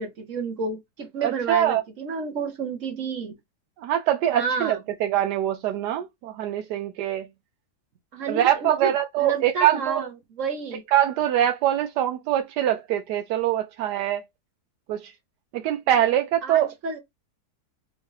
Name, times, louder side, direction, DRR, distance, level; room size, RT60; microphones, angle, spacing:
voice 1, 0.0-3.4 4.3-4.8 8.1-10.8 16.4-17.0, right 5 dB, 55° right, 1.2 m, -30 dB
voice 2, 1.2-1.8 3.8-7.2 8.3-10.1 10.9-14.2 14.9-15.1 15.5-16.7, right 11 dB, 85° right, 1.2 m, -23 dB
4.6 x 2.6 x 3.1 m
omnidirectional pair, 1.7 m